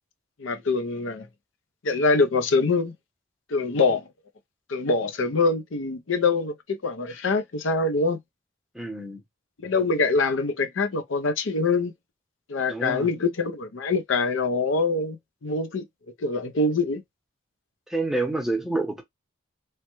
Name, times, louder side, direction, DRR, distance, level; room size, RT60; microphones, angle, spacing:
voice 1, 0.4-1.3 1.8-2.9 3.5-4.0 4.7-8.2 9.6-11.9 12.5-15.9 16.2-17.0, left 3 dB, 85° left, 0.6 m, -24 dB
voice 2, 8.7-9.2 12.7-13.1 17.9-19.0, right 2 dB, ahead, 0.7 m, -28 dB
3.2 x 2.2 x 3.0 m
head